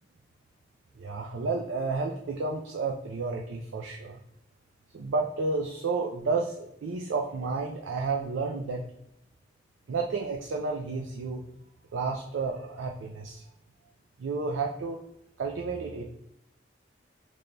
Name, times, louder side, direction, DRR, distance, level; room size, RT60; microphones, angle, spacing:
voice 1, 0.9-4.2 4.9-8.8 9.9-11.4 11.9-13.4 14.2-15.0 15.4-16.0, right 4 dB, 85° right, 1 dB, 0.4 m, -31 dB
3.3 x 2.2 x 3.8 m, 0.81 s
head